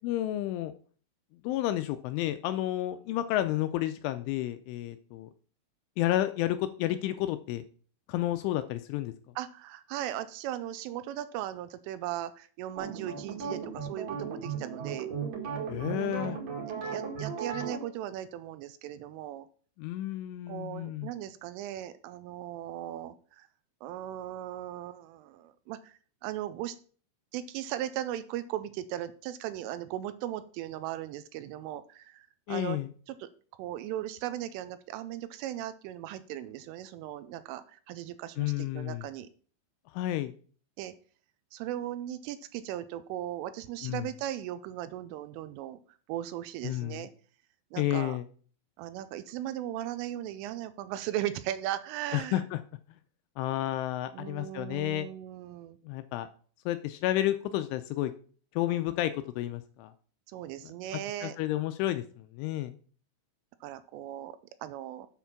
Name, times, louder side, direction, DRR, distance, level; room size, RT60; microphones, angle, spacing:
voice 1, 0.0-0.7 1.4-5.3 6.0-7.6 8.1-9.1 15.7-16.4 19.8-21.1 32.5-32.9 38.4-39.1 39.9-40.4 43.8-44.1 46.6-47.0 47.8-48.2 52.1-52.6 53.4-55.1 55.8-56.3 56.7-58.1 58.6-59.9 61.2-62.8, left 14 dB, 85° left, 10 dB, 2.8 m, -31 dB
voice 2, 9.4-15.1 16.7-19.5 20.5-23.5 23.8-26.8 27.3-32.8 33.1-33.3 33.6-39.3 40.8-40.9 41.5-45.8 46.1-47.1 47.7-48.2 48.8-52.4 54.1-55.8 60.3-61.4 63.6-65.1, right 12 dB, 85° right, 12 dB, 3.1 m, -38 dB
sound 1, 12.8-17.8, right 6 dB, 50° right, 2.3 m, -36 dB
8.2 x 6.9 x 5.8 m, 0.43 s
omnidirectional pair, 5.9 m